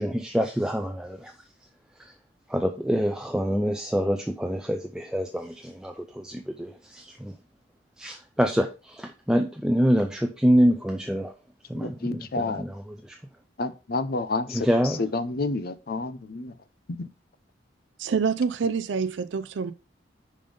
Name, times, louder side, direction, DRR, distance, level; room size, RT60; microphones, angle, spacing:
voice 1, 0.0-1.3 2.0-2.1 2.5-7.3 8.0-11.3 11.7-13.2 14.5-15.0, equal, 5° right, 0.4 m, -26 dB
voice 2, 11.8-12.6 13.6-16.6 16.9-17.1, left 3 dB, 55° left, 0.6 m, -30 dB
voice 3, 18.0-19.7, right 5 dB, 75° right, 0.4 m, -26 dB
5.3 x 5.3 x 5.3 m
head